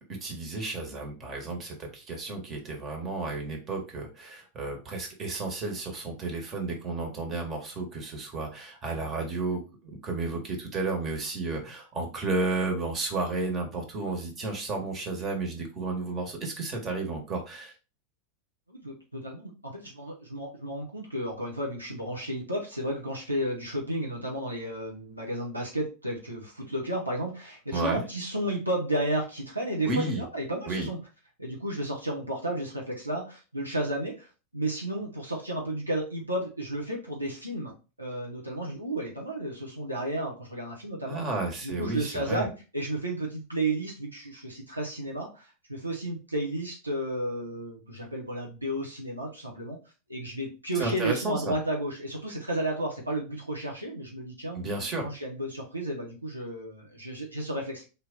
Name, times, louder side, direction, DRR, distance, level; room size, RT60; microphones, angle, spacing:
voice 1, 0.1-17.7 27.7-28.0 29.8-30.2 30.7-30.9 41.1-42.5 50.8-51.5 54.5-55.1, right 3 dB, 25° right, 2 dB, 1.4 m, -32 dB
voice 2, 18.7-31.0 31.4-34.3 34.5-41.2 41.6-49.8 50.1-54.6 55.0-57.8, right 1 dB, 85° right, -2 dB, 1.0 m, -32 dB
3.6 x 2.8 x 3.8 m, 0.32 s
figure-of-eight pair, 90°, 0 cm